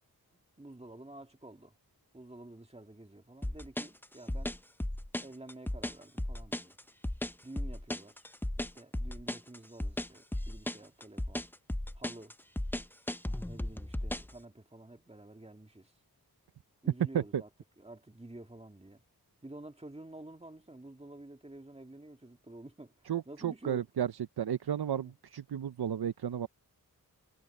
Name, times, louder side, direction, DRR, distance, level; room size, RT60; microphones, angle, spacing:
voice 1, 0.3-1.8 2.1-4.6 5.2-6.8 7.4-8.3 8.6-11.5 11.9-12.4 13.4-15.9 16.8-17.5 17.8-19.0 19.4-23.8 24.9-25.1, right 2 dB, 15° right, 2.1 m, -50 dB
sound 1, 3.4-14.3, left 1 dB, 5° left, 0.5 m, -35 dB
voice 2, 23.1-24.1 24.4-26.5, right 9 dB, 85° right, 0.6 m, -33 dB
wide cardioid pair, 65°, 38 cm